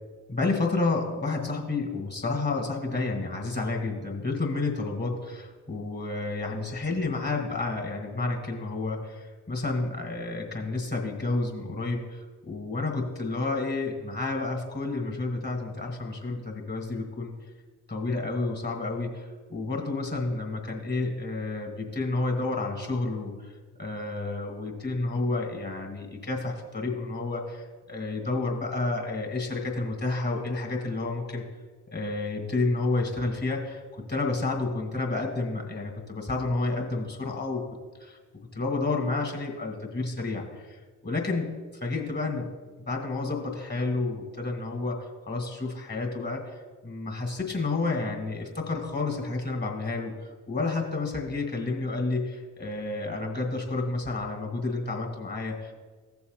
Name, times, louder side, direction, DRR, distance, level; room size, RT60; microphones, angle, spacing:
voice 1, 0.3-17.3 17.9-23.5 23.8-31.4 31.9-37.6 38.0-38.2 38.5-40.8 41.0-41.5 41.8-42.5 42.9-45.0 45.2-46.6 46.8-50.1 50.5-55.7, left 3 dB, 25° left, 1 dB, 2.4 m, -30 dB
16.5 x 6.9 x 2.5 m, 1.4 s
figure-of-eight pair, 40°, 42 cm